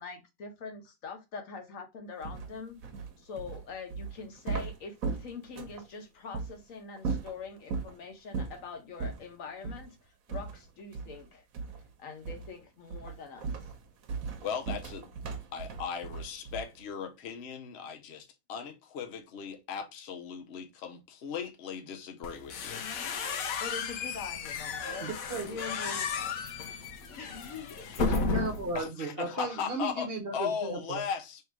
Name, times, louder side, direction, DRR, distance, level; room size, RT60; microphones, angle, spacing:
voice 1, 0.0-2.8 3.2-11.4 12.0-13.6 23.6-25.1 25.4-26.4 27.1-27.9, left 4 dB, 75° left, 1.3 m, -43 dB
sound 1, 2.2-5.9 6.3-6.5 7.0-7.9 8.3-8.6 9.0-9.2 9.6-9.9 10.3-11.3 11.5-11.9 12.2-12.6 12.9-16.8, right 4 dB, 85° right, 1.2 m, -37 dB
voice 2, 14.4-15.1 15.5-22.8 28.7-31.4, left 7 dB, 60° left, 0.9 m, -37 dB
sound 2, 22.2-28.8, left 4 dB, 90° left, 1.1 m, -34 dB
voice 3, 25.0-25.6 28.0-31.0, right 3 dB, 50° right, 1.0 m, -36 dB
3.4 x 2.7 x 4.5 m
omnidirectional pair, 1.4 m